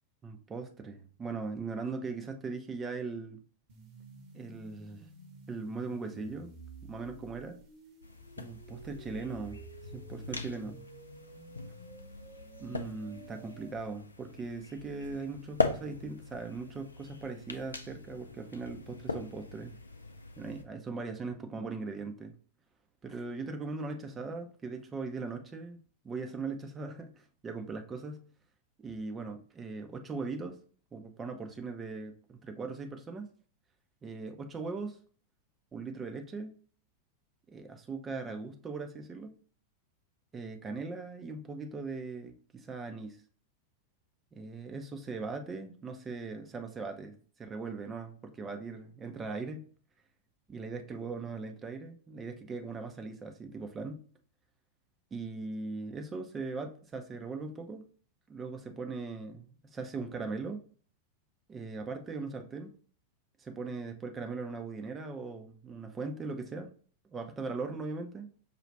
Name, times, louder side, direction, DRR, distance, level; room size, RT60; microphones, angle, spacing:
voice 1, 0.2-3.4 4.3-5.1 5.5-6.5 6.8-7.6 8.4-9.6 9.9-10.8 12.6-19.8 20.4-22.3 23.0-25.8 26.0-28.2 28.8-30.6 30.9-33.3 34.0-35.0 35.7-36.5 37.5-39.3 40.3-43.2 44.3-49.6 50.5-54.0 55.1-57.8 58.3-60.6 61.5-62.7 63.4-66.7 67.1-68.3, right 4 dB, 20° right, 5 dB, 0.6 m, -39 dB
sound 1, 3.7-13.7, right 3 dB, 55° right, 1.1 m, -52 dB
sound 2, 8.0-20.6, left 3 dB, 80° left, 0.4 m, -40 dB
5.2 x 2.4 x 3.2 m, 0.43 s
figure-of-eight pair, 90°, 0 cm